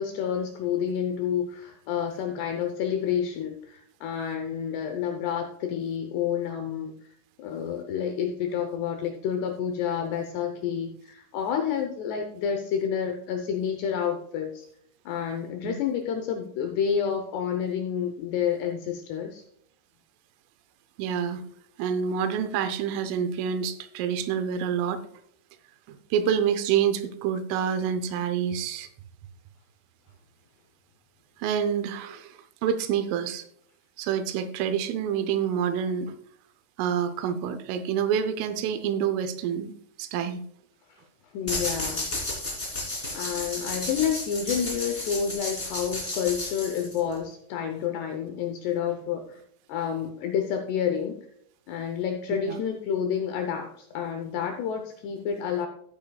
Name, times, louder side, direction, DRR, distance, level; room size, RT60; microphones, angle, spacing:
voice 1, 0.0-6.9 7.4-14.7 15.1-19.4 41.3-42.1 43.1-49.4 49.7-51.2 51.7-55.7, left 8 dB, 80° left, 5 dB, 2.5 m, -29 dB
voice 2, 21.0-21.4 21.8-25.0 25.9-28.9 31.4-33.4 34.0-36.2 36.8-40.4 52.5-52.6, right 8 dB, 85° right, 10 dB, 3.3 m, -27 dB
sound 1, 41.5-47.2, left 2 dB, 20° left, 1.7 m, -33 dB
15.0 x 8.7 x 2.3 m, 0.68 s
omnidirectional pair, 5.7 m